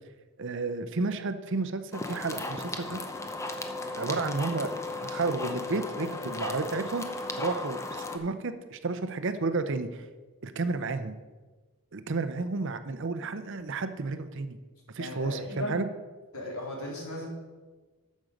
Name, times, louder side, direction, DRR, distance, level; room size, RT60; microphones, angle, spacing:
voice 1, 0.4-3.0 4.0-4.7 5.0-7.1 7.4-10.1 10.4-11.1 11.9-14.6 14.9-15.9, right 3 dB, 55° right, 10 dB, 0.6 m, -32 dB
sound 1, 1.9-8.2, left 2 dB, 15° left, 0.7 m, -36 dB
voice 2, 15.0-15.8 16.3-17.3, left 1 dB, 70° left, -2 dB, 3.0 m, -36 dB
8.7 x 6.4 x 6.5 m, 1.3 s
head